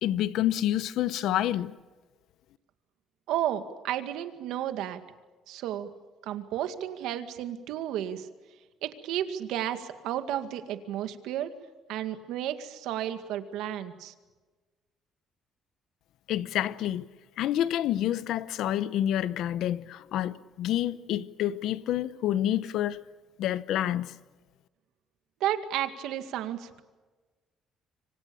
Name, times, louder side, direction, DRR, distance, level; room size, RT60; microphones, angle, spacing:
voice 1, 0.0-1.7 16.3-17.1 17.4-23.0 23.4-24.1, left 12 dB, 75° left, 0.9 m, -28 dB
voice 2, 3.3-5.0 5.5-5.9 6.2-8.3 8.8-11.5 11.9-14.1 25.4-26.8, right 11 dB, 85° right, 2.1 m, -32 dB
27.0 x 25.0 x 7.0 m
cardioid pair, 140°, 0 cm